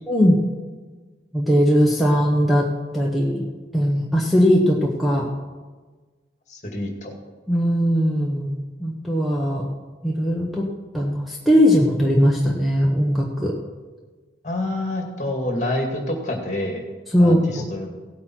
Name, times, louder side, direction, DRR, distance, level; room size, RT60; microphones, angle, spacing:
voice 1, 1.3-3.5 3.7-5.3 7.5-9.7 10.0-10.7 10.9-13.5 17.1-17.7, equal, ahead, -2 dB, 1.2 m, -19 dB
voice 2, 6.5-7.1 14.4-16.8 17.2-17.9, left 1 dB, 40° left, 2 dB, 2.3 m, -27 dB
17.0 x 8.4 x 4.6 m, 1.3 s
head